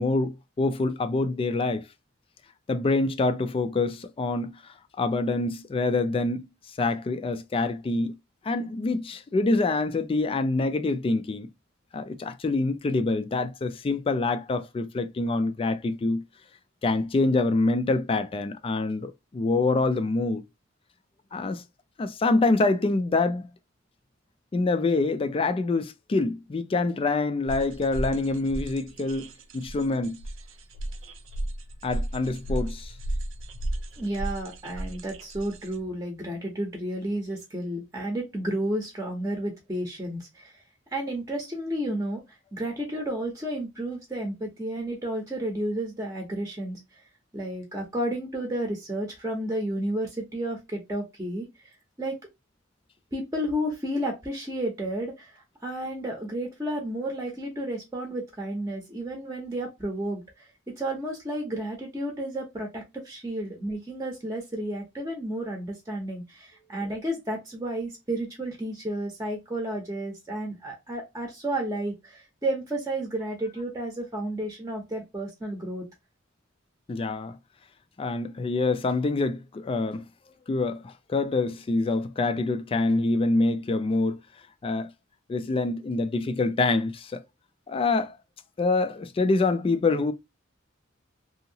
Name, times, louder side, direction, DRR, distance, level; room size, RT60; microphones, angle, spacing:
voice 1, 0.0-1.9 2.7-6.5 6.8-8.1 8.4-11.5 11.9-16.2 16.8-20.4 21.3-21.6 22.0-23.5 24.5-30.2 31.8-32.9 76.9-77.4 78.0-80.1 80.5-84.2 84.6-84.9 85.3-87.2 87.7-88.2 88.6-90.1, left 3 dB, 30° left, 0.3 m, -26 dB
sound 1, 27.5-35.8, right 1 dB, 75° right, 0.5 m, -34 dB
voice 2, 34.0-40.6 40.9-47.0 47.3-52.2 53.1-60.5 60.8-75.9, right 1 dB, 15° right, 0.7 m, -32 dB
2.8 x 2.7 x 2.7 m
head